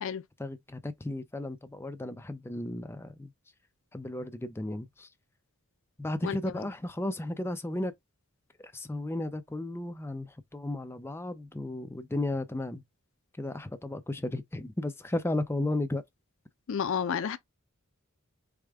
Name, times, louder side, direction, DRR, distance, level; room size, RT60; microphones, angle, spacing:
voice 1, 0.4-3.3 3.9-5.1 6.0-7.9 8.6-12.8 13.4-16.0, left 1 dB, 10° left, 0.5 m, -34 dB
voice 2, 16.7-17.4, left 7 dB, 65° left, 0.4 m, -30 dB
4.9 x 2.2 x 3.5 m
head